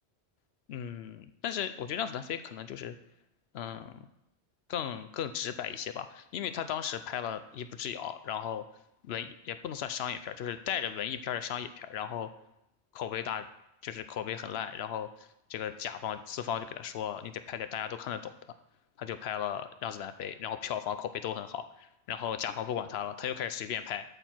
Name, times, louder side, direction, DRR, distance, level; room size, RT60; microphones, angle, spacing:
voice 1, 0.7-2.9 3.5-4.0 4.7-8.7 9.0-12.3 12.9-13.5 13.8-18.3 19.0-24.0, left 9 dB, 70° left, 11 dB, 0.8 m, -36 dB
13.0 x 4.5 x 4.4 m, 0.83 s
omnidirectional pair, 1.1 m